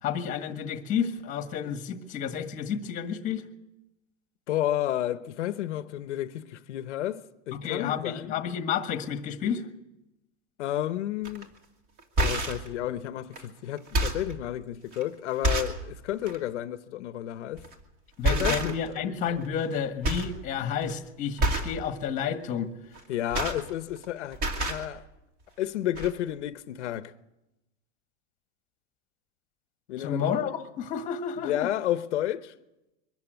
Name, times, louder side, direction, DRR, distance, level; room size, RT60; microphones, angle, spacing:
voice 1, 0.0-3.4 7.6-9.6 18.2-22.7 30.0-31.7, left 7 dB, 20° left, 1.6 m, -30 dB
voice 2, 4.5-8.3 10.6-11.5 12.2-17.6 18.3-19.0 23.1-25.0 25.6-27.1 29.9-30.3 31.4-32.5, left 12 dB, 80° left, 1.1 m, -31 dB
sound 1, 11.2-11.4 12.0-12.7 13.3-13.4 13.8-14.3 14.9-15.0 15.4-15.8 16.2-16.4 17.6-17.8 18.2-19.0 19.3-19.7 20.0-20.4 20.7-20.9 21.4-21.8 22.9-24.1 24.3-24.9 25.6-25.7 25.9-26.1, right 1 dB, 25° right, 2.5 m, -28 dB
23.0 x 13.5 x 9.3 m
supercardioid pair, 165°, 35 cm